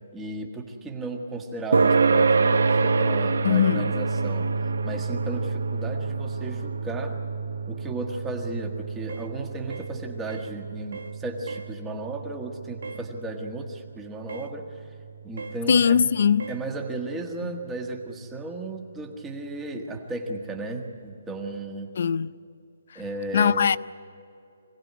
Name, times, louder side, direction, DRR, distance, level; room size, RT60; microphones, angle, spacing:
voice 1, 0.1-7.2 7.7-14.9 15.2-16.1 16.5-21.9 22.9-23.8, right 2 dB, 10° right, 1.5 m, -35 dB
sound 1, 1.7-16.6, right 4 dB, 90° right, 0.8 m, -27 dB
voice 2, 3.4-3.9 15.7-16.5 17.4-17.6 22.0-22.3 23.3-23.8, left 7 dB, 50° left, 0.5 m, -21 dB
sound 2, 9.1-9.3 9.7-9.9 10.3-10.5 10.9-11.2 11.5-11.7 12.8-13.1 14.3-14.5 15.4-15.6 16.4-16.6, right 4 dB, 65° right, 1.2 m, -39 dB
25.5 x 17.5 x 9.5 m
hypercardioid pair, 175°, 0 cm